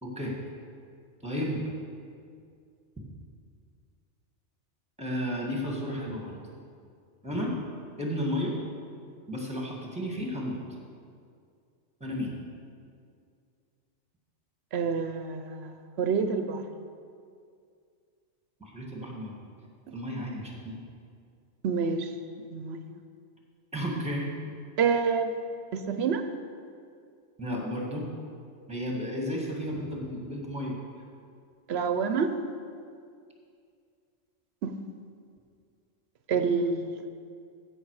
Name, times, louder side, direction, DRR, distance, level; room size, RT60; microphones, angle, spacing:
voice 1, 0.0-0.3 1.2-1.7 3.0-3.1 5.0-6.3 7.2-7.5 8.0-8.6 9.3-10.6 12.0-12.4 18.6-19.4 19.9-20.6 23.7-24.3 27.4-28.1 28.7-30.7, equal, 5° right, -2 dB, 1.7 m, -32 dB
voice 2, 14.7-15.7 16.0-16.6 21.6-22.1 22.5-22.8 24.8-25.3 25.7-26.2 31.7-32.3 34.6-34.8 36.3-37.1, right 5 dB, 65° right, 8 dB, 0.8 m, -27 dB
15.5 x 6.0 x 4.7 m, 2.3 s
omnidirectional pair, 1.2 m